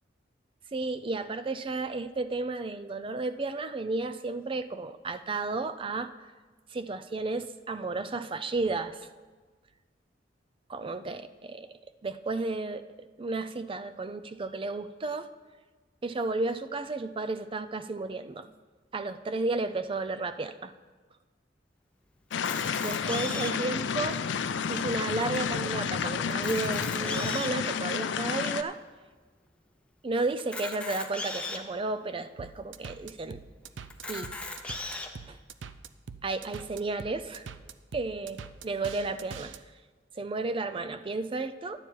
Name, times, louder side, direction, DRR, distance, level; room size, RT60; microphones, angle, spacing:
voice 1, 0.7-6.1 6.7-9.1 10.7-11.7 12.0-15.3 16.0-18.5 18.9-20.7 22.8-24.2 24.7-28.8 30.0-33.4 34.1-34.3 35.3-35.4 36.2-37.5 37.9-38.4 38.6-39.5 40.1-41.8, right 3 dB, 30° right, 12 dB, 0.4 m, -33 dB
sound 1, 22.3-28.6, left 6 dB, 70° left, 0.4 m, -30 dB
Camera, 22.3-23.7 24.4-24.5 24.7-24.8 25.4-25.5 26.3-27.6 28.3-28.4 30.4-31.6 32.3-32.4 32.7-32.8 33.9-35.1, left 2 dB, 5° left, 0.8 m, -37 dB
sound 2, 32.4-39.6, right 5 dB, 90° right, 0.5 m, -43 dB
11.5 x 8.9 x 4.6 m, 1.4 s
head